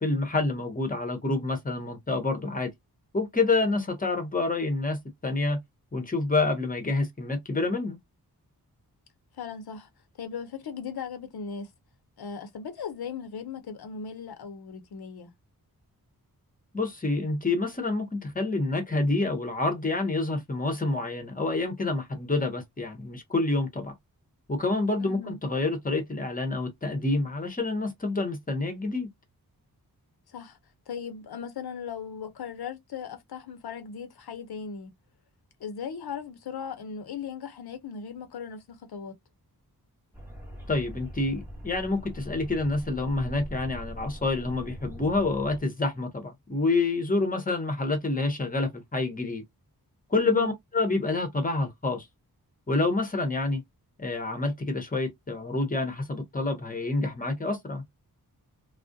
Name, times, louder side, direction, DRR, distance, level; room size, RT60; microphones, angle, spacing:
voice 1, 0.0-2.7 3.1-5.6 5.9-8.0 16.7-23.9 24.5-29.1 40.7-49.4 50.1-52.0 52.7-53.6 54.0-57.8, left 3 dB, 20° left, 0.8 m, -28 dB
voice 2, 9.4-9.9 10.2-11.7 12.2-15.3 25.0-25.4 30.3-30.6 30.9-34.9 35.6-39.1 50.1-50.6, left 6 dB, 85° left, 0.7 m, -38 dB
sound 1, 40.1-45.6, equal, 5° right, 0.8 m, -42 dB
2.3 x 2.1 x 2.6 m
wide cardioid pair, 85°, 37 cm